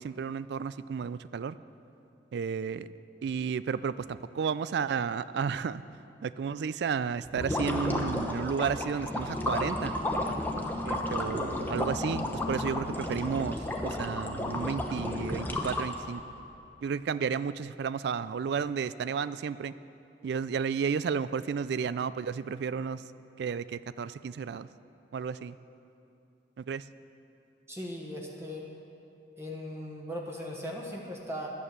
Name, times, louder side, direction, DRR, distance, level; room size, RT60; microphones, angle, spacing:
voice 1, 0.0-1.6 2.3-2.9 3.2-5.8 6.2-9.9 10.8-16.2 16.8-19.7 20.2-23.0 23.4-24.7 25.1-25.6 26.6-26.8, right 6 dB, 65° right, 16 dB, 0.3 m, -32 dB
sound 1, 7.3-16.2, left 1 dB, 10° left, 0.9 m, -32 dB
voice 2, 27.7-28.6 29.4-31.5, equal, 15° right, -1 dB, 1.2 m, -38 dB
11.0 x 9.2 x 6.6 m, 2.7 s
head